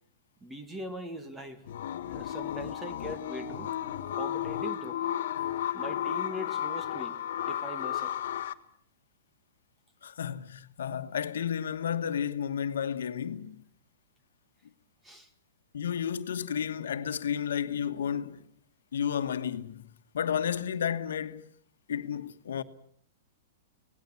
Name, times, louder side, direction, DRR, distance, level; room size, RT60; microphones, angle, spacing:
voice 1, 0.4-1.6 2.1-3.7 4.1-5.0 5.7-7.2 7.5-8.1 15.0-15.3, equal, 5° right, 1.4 m, -41 dB
sound 1, 1.7-8.5, left 11 dB, 55° left, 1.2 m, -33 dB
voice 2, 10.0-13.6 15.7-18.5 18.9-19.9 20.1-21.5 21.9-22.6, left 8 dB, 85° left, 1.4 m, -32 dB
25.5 x 18.5 x 7.2 m
hypercardioid pair, 170°, 0 cm